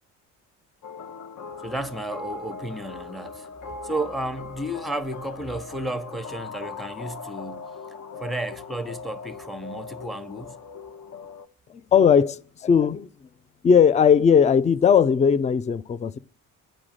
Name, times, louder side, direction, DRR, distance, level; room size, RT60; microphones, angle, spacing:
sound 1, 0.8-11.5, left 4 dB, 45° left, 0.9 m, -40 dB
voice 1, 1.6-3.5 3.8-7.7 8.2-10.6, right 1 dB, ahead, 1.0 m, -32 dB
voice 2, 11.7-13.1 13.6-16.2, left 7 dB, 15° left, 0.4 m, -18 dB
9.9 x 4.9 x 7.5 m
hypercardioid pair, 55°, 44 cm